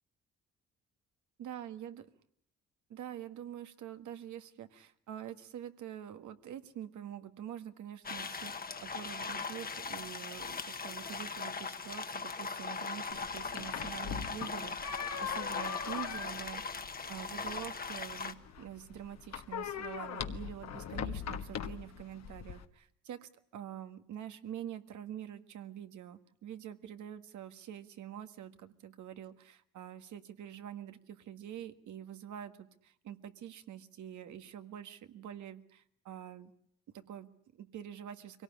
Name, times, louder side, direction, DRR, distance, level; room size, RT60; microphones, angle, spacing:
voice 1, 1.4-2.1 2.9-36.5 36.9-38.4, right 10 dB, 75° right, 9 dB, 1.6 m, -46 dB
sound 1, 8.0-18.3, left 4 dB, 30° left, 1.4 m, -40 dB
sound 2, 13.1-22.6, left 8 dB, 60° left, 1.5 m, -41 dB
24.0 x 18.0 x 9.9 m, 0.68 s
cardioid pair, 90°, 30 cm